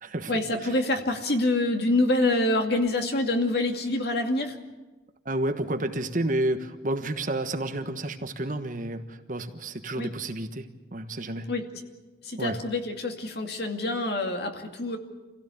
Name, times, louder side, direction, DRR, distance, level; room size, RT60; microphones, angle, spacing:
voice 1, 0.3-4.6 10.0-10.1 11.5-11.7 12.2-15.0, left 2 dB, 55° left, 4 dB, 2.4 m, -26 dB
voice 2, 5.2-11.5 12.4-12.6, right 1 dB, 45° right, 7 dB, 1.4 m, -30 dB
27.0 x 16.5 x 8.6 m, 1.2 s
head